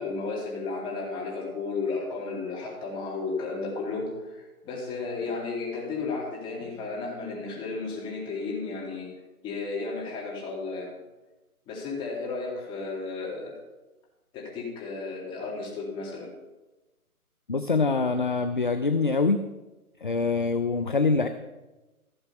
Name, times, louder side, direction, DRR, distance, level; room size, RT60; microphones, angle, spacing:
voice 1, 0.0-9.1 9.4-10.9 11.7-13.6 14.3-16.3, left 3 dB, 10° left, -3 dB, 2.5 m, -33 dB
voice 2, 17.5-19.4 20.0-21.3, left 4 dB, 35° left, 9 dB, 0.5 m, -24 dB
15.5 x 6.9 x 5.6 m, 1.1 s
figure-of-eight pair, 150°, 45 cm